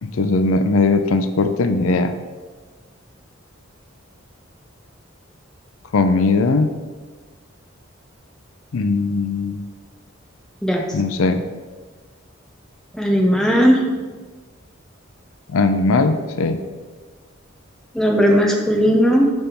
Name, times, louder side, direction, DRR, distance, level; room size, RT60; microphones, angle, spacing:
voice 1, 0.0-2.1 5.9-6.8 8.7-9.6 10.9-11.4 15.5-16.6, left 3 dB, 85° left, 9 dB, 0.5 m, -19 dB
voice 2, 12.9-13.8 17.9-19.3, equal, ahead, 0 dB, 0.7 m, -16 dB
5.4 x 5.3 x 4.4 m, 1.4 s
head